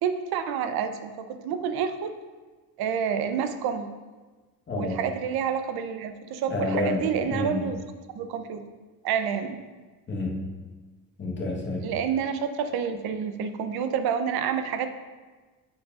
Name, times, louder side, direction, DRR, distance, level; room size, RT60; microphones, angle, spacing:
voice 1, 0.0-2.1 2.8-3.9 4.8-7.8 8.1-8.7 9.0-9.6 11.8-14.9, right 7 dB, 70° right, 9 dB, 0.8 m, -28 dB
voice 2, 4.7-5.0 6.5-7.7 10.1-10.5 11.2-11.9, left 2 dB, 30° left, -2 dB, 1.3 m, -29 dB
9.4 x 7.6 x 2.5 m, 1.3 s
cardioid pair, 125°, 39 cm